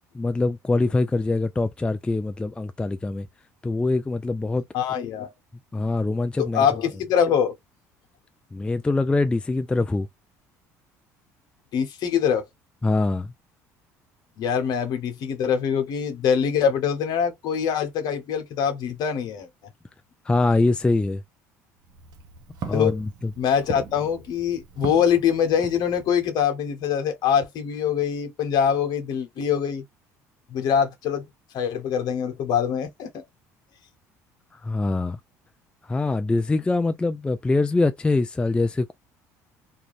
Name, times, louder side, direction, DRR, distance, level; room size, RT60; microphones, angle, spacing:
voice 1, 0.1-3.3 3.6-4.6 5.7-6.6 8.5-10.1 12.8-13.3 20.3-21.2 22.7-23.3 34.6-35.2 35.8-38.9, left 3 dB, 15° left, 0.3 m, -23 dB
voice 2, 4.7-5.3 6.4-7.5 11.7-12.5 14.4-19.5 22.7-23.0 23.4-29.8 30.5-31.2 31.5-33.2, left 8 dB, 60° left, 0.9 m, -24 dB
Walk footsteps, 21.8-26.3, right 7 dB, 60° right, 0.7 m, -40 dB
2.5 x 2.2 x 3.0 m
hypercardioid pair, 70°, 8 cm